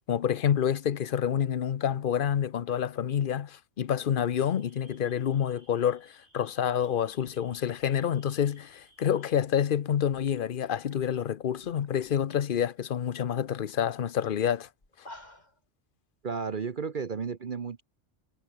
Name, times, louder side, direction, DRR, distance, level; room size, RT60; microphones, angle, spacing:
voice 1, 0.1-14.7, left 9 dB, 55° left, 0.8 m, -28 dB
sound 1, 4.3-9.3, right 1 dB, 70° right, 7.2 m, -62 dB
sound 2, 9.9-10.0 10.2-12.2 12.5-13.0 13.3-13.4 13.7-13.9 14.2-14.3 14.8-15.6, left 1 dB, 40° left, 4.8 m, -52 dB
voice 2, 16.2-17.8, right 5 dB, 50° right, 1.1 m, -33 dB
omnidirectional pair, 1.2 m